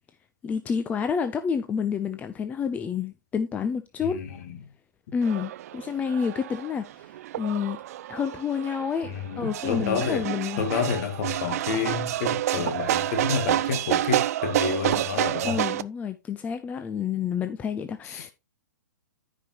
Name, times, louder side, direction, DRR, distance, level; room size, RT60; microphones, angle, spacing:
voice 1, 0.4-4.2 5.1-6.8 7.4-7.8 8.1-10.6 15.4-18.3, left 6 dB, 15° left, 0.6 m, -29 dB
sound 1, 5.2-15.8, right 13 dB, 50° right, 0.5 m, -29 dB
voice 2, 9.1-10.3 10.6-15.6 18.1-18.2, left 6 dB, 50° left, 1.8 m, -29 dB
13.5 x 5.3 x 3.0 m
hypercardioid pair, 125°, 10 cm